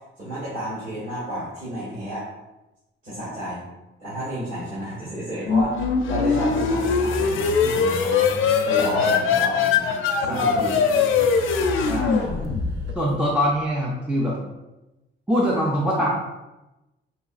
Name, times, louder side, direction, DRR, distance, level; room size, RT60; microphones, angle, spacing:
voice 1, 0.2-2.3 3.0-3.6 4.0-8.3 8.6-10.8 11.8-12.5, right 1 dB, 40° right, -10 dB, 1.4 m, -31 dB
sound 1, 5.5-13.1, left 5 dB, 85° left, 0.5 m, -21 dB
sound 2, 6.4-12.9, right 1 dB, 65° right, 0.6 m, -40 dB
voice 2, 12.9-14.4 15.3-16.1, equal, 5° right, -5 dB, 0.4 m, -23 dB
4.8 x 3.0 x 2.4 m, 1.0 s
wide cardioid pair, 175°, 20 cm